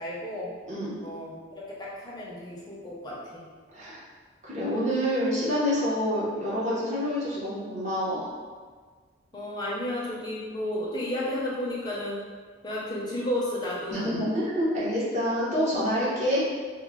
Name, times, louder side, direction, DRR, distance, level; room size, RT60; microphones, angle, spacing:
voice 1, 0.0-0.5 1.0-3.5 9.3-12.2 12.6-14.1, left 1 dB, 20° left, -6 dB, 0.6 m, -32 dB
voice 2, 0.7-1.0 3.7-4.0 4.4-8.2 13.9-16.4, equal, 40° right, -8 dB, 0.9 m, -27 dB
3.1 x 2.1 x 3.6 m, 1.5 s
head